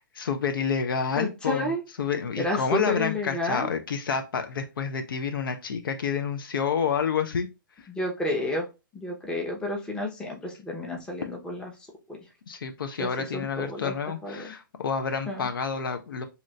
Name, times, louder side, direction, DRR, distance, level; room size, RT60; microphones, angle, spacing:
voice 1, 0.2-1.7 2.0-7.5 12.5-16.2, left 6 dB, 75° left, 7 dB, 0.6 m, -29 dB
voice 2, 1.2-1.8 2.4-3.7 7.9-8.7 8.9-11.7 13.0-14.0 14.2-14.5 15.3-15.5, left 2 dB, 5° left, 0 dB, 0.8 m, -30 dB
2.9 x 2.5 x 3.2 m, 0.27 s
hypercardioid pair, 135°, 12 cm